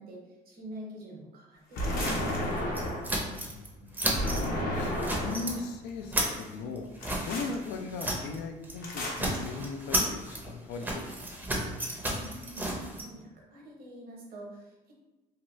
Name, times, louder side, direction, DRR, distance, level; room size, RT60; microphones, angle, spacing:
voice 1, 0.0-2.7 12.1-14.9, equal, 60° right, -1 dB, 0.9 m, -46 dB
sound 1, 1.7-3.2 4.1-5.6 7.0-7.6 8.8-9.4, equal, 60° left, 0.8 m, -32 dB
sound 2, 2.0-3.7 3.9-4.5 4.8-5.6 5.9-8.4 8.6-8.8 9.1-13.0, right 1 dB, 10° right, 0.5 m, -33 dB
voice 2, 3.4-4.2 4.6-6.9 7.2-11.1, left 4 dB, 85° left, 4 dB, 0.4 m, -38 dB
2.8 x 2.2 x 3.0 m, 1.1 s
cardioid pair, 110°, 17 cm